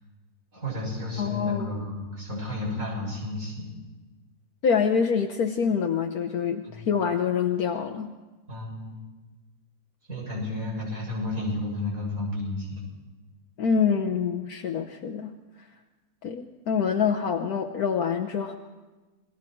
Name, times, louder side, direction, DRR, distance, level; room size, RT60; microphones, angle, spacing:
voice 1, 0.5-3.7 6.6-6.9 8.5-9.0 10.1-12.8, left 1 dB, 55° right, -3 dB, 7.9 m, -32 dB
voice 2, 1.2-1.7 4.6-8.1 13.6-15.3 16.2-18.6, left 6 dB, 70° left, 3 dB, 1.5 m, -26 dB
28.5 x 21.0 x 4.6 m, 1.2 s
omnidirectional pair, 1.7 m